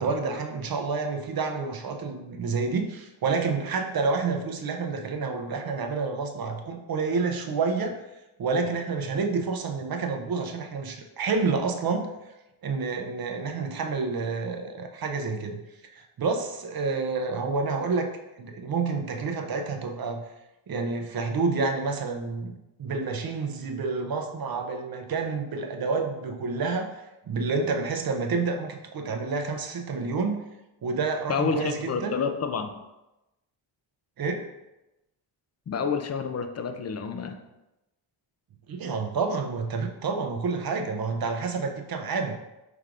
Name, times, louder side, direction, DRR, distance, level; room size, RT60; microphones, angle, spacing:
voice 1, 0.0-8.0 8.4-12.0 12.6-15.6 15.9-18.1 18.4-20.2 20.7-22.5 22.8-30.4 30.8-32.1 34.2-34.4 38.7-42.4, right 4 dB, 45° right, 4 dB, 0.6 m, -29 dB
voice 2, 31.3-32.7 35.7-37.4, left 5 dB, 35° left, 7 dB, 0.5 m, -29 dB
5.9 x 3.3 x 2.5 m, 0.97 s
cardioid pair, 80°, 49 cm